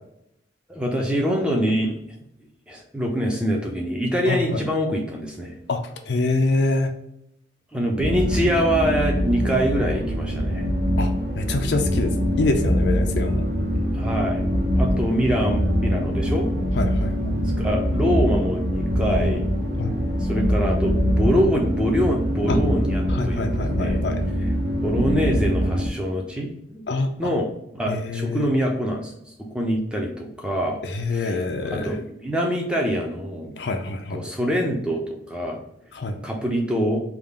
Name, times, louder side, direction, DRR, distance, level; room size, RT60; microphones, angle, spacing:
voice 1, 0.7-1.9 2.7-5.6 7.7-10.7 13.9-14.5 14.7-16.5 17.4-19.4 20.2-24.0 24.8-26.8 27.2-27.5 27.7-30.8 31.1-31.4 31.7-33.6 34.1-35.6 36.2-37.0, equal, 5° right, 0 dB, 0.6 m, -25 dB
voice 2, 4.3-4.6 5.7-6.9 11.0-13.4 16.8-17.4 19.8-20.0 22.5-22.6 23.1-24.2 26.9-27.1 27.9-28.5 30.8-31.9 33.6-34.2 35.9-36.2, left 2 dB, 60° left, 5 dB, 0.5 m, -25 dB
sound 1, 8.0-25.9, equal, 50° right, 0.7 m, -23 dB
3.6 x 2.4 x 3.6 m, 0.79 s
head